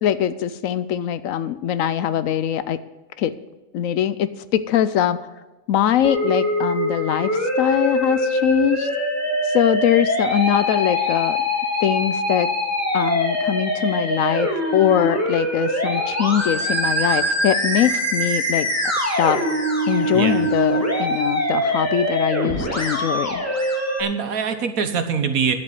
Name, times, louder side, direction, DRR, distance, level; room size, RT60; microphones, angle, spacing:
voice 1, 0.0-2.8 3.2-3.3 3.7-5.2 5.7-7.3 7.6-8.9 9.5-11.4 11.8-12.5 12.9-18.7 19.2-19.4 19.9-23.4, left 10 dB, 70° left, 14 dB, 1.0 m, -22 dB
Musical instrument, 6.0-24.0, equal, 10° left, 2.0 m, -23 dB
voice 2, 20.1-20.4 24.0-25.6, right 6 dB, 75° right, 8 dB, 1.5 m, -23 dB
11.0 x 7.7 x 7.6 m, 1.2 s
omnidirectional pair, 1.5 m